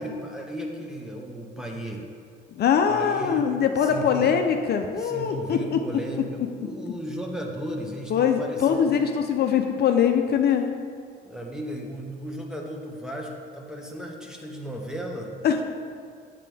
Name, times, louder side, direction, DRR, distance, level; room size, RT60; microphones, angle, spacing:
voice 1, 0.0-2.0 2.9-3.5 3.8-4.3 5.0-8.9 11.2-15.3, right 1 dB, 5° right, 1 dB, 1.1 m, -35 dB
voice 2, 2.5-5.8 8.1-10.7 15.4-15.6, left 7 dB, 55° left, 5 dB, 0.6 m, -22 dB
8.3 x 7.6 x 3.4 m, 2.2 s
cardioid pair, 95°, 20 cm